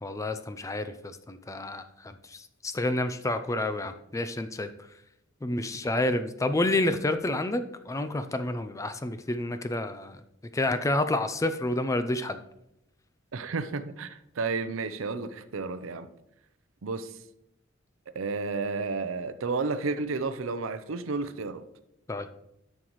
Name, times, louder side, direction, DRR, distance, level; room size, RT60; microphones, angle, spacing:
voice 1, 0.0-4.7 5.4-10.2 10.5-12.4 22.1-22.3, left 2 dB, 15° left, 10 dB, 0.4 m, -29 dB
voice 2, 13.3-16.1 16.8-17.1 18.1-21.6, right 4 dB, 85° right, 12 dB, 0.6 m, -32 dB
11.0 x 6.5 x 3.1 m, 0.82 s
head